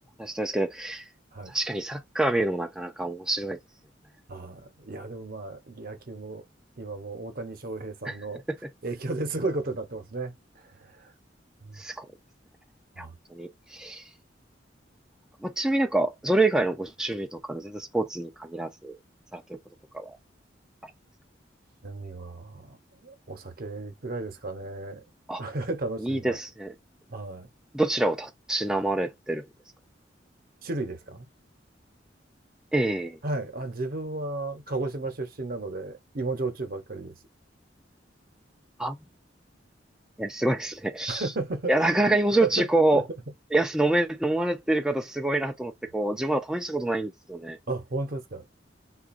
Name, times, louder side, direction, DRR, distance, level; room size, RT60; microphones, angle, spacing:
voice 1, 0.2-1.1 1.5-3.6 8.1-8.2 11.8-12.1 13.0-14.0 15.4-18.9 19.3-19.6 19.9-20.1 20.8-20.9 25.3-25.4 26.0-26.7 27.7-29.4 32.7-33.2 38.8-39.0 40.2-41.2 41.7-43.0 43.5-47.6, right 2 dB, 5° right, 0.4 m, -26 dB
voice 2, 4.3-6.4 6.8-8.4 8.8-10.4 10.6-11.1 11.6-11.8 13.0-13.2 21.8-25.0 25.4-26.4 27.1-27.5 30.6-31.3 33.2-37.1 41.1-42.7 42.9-43.0 47.7-48.5, right 2 dB, 55° right, 0.8 m, -34 dB
3.8 x 2.3 x 2.5 m
head